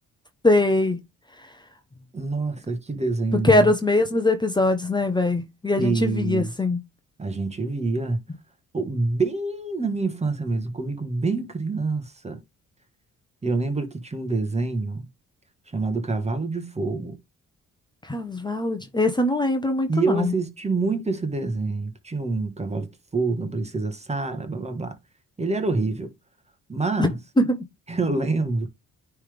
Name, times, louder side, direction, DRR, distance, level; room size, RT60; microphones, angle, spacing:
voice 1, 0.4-1.0 3.4-6.8 18.0-20.3 27.0-27.1 27.4-27.6, left 2 dB, 15° left, 1.0 m, -21 dB
voice 2, 2.1-3.7 5.8-6.5 7.2-8.2 8.7-12.4 13.4-15.1 15.7-17.2 19.9-25.0 25.4-26.1 26.7-27.2 27.9-28.7, right 3 dB, 20° right, 1.4 m, -26 dB
9.6 x 3.5 x 3.5 m
cardioid pair, 90°, 30 cm